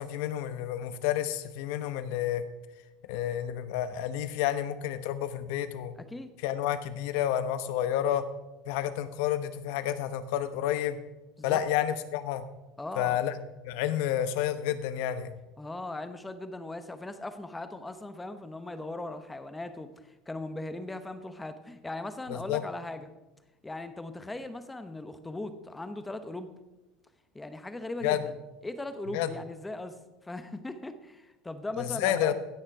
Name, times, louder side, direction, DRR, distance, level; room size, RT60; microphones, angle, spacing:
voice 1, 0.0-2.4 3.1-5.9 6.4-8.2 8.7-11.0 11.4-12.4 13.0-13.3 13.6-15.3 22.3-22.6 28.0-28.2 29.1-29.3 31.8-32.3, left 11 dB, 70° left, 12 dB, 0.9 m, -30 dB
voice 2, 6.0-6.3 11.4-11.6 12.8-13.2 15.6-23.1 23.6-26.5 27.3-28.3 28.6-32.3, left 2 dB, 10° left, 10 dB, 0.8 m, -39 dB
16.0 x 6.4 x 4.8 m, 1.0 s
supercardioid pair, 140°, 0 cm